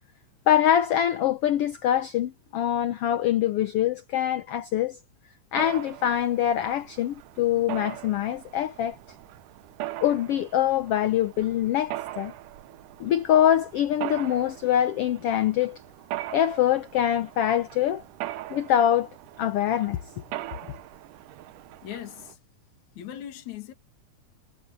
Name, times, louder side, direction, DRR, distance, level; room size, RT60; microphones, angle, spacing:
voice 1, 0.5-5.0 5.5-9.0 10.0-12.3 13.0-15.8 16.3-18.0 18.5-19.1 19.4-20.0, left 11 dB, 85° left, 1.3 m, -24 dB
Mechanisms, 5.6-22.3, right 14 dB, 85° right, 2.6 m, -40 dB
voice 2, 21.8-22.4 23.0-23.7, left 11 dB, 65° left, 3.4 m, -39 dB
omnidirectional pair, 3.6 m